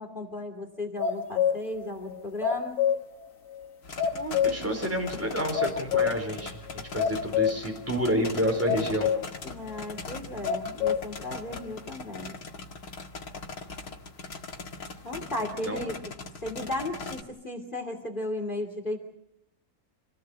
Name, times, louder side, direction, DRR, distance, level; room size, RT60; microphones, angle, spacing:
voice 1, 0.0-2.8 9.4-12.4 15.0-16.0 16.4-19.0, left 1 dB, 30° left, 5 dB, 2.8 m, -35 dB
sound 1, 1.0-1.8 2.1-3.3 3.5-3.7 4.0-4.8 5.1-5.2 5.5-6.4 6.7-7.8 8.1-8.2 8.6-9.4 9.8-9.9 10.4-11.2, left 8 dB, 60° left, 2.3 m, -27 dB
sound 2, 3.8-17.2, left 3 dB, 75° left, 2.4 m, -41 dB
voice 2, 4.1-9.1 15.3-15.9, equal, 10° right, 3 dB, 4.4 m, -29 dB
27.5 x 18.0 x 8.0 m, 0.79 s
omnidirectional pair, 1.6 m